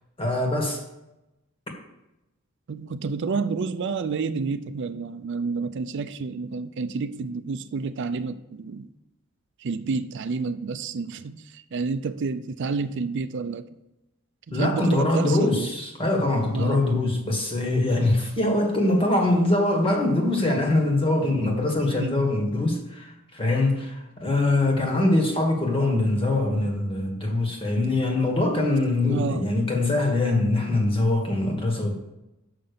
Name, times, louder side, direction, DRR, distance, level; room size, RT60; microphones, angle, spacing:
voice 1, 0.2-0.8 14.5-31.9, left 2 dB, 25° left, 1.6 m, -23 dB
voice 2, 2.7-8.9 9.6-13.6 14.5-15.7 16.5-16.8 22.0-22.2 29.1-29.5, right 4 dB, 60° right, 0.4 m, -29 dB
6.5 x 5.6 x 6.8 m
head